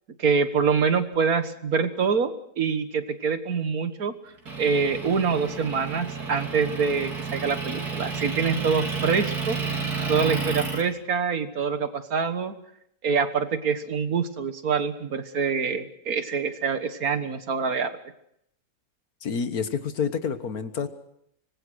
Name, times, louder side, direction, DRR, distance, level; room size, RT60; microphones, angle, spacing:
voice 1, 0.2-4.1 4.6-9.6 10.1-12.5 13.0-17.9, right 5 dB, 70° right, 9 dB, 1.9 m, -25 dB
Motor vehicle (road) / Engine, 4.5-10.8, right 5 dB, 90° right, 4.4 m, -31 dB
voice 2, 19.2-20.9, left 6 dB, 75° left, 10 dB, 1.9 m, -28 dB
25.5 x 20.0 x 6.4 m, 0.74 s
omnidirectional pair, 1.6 m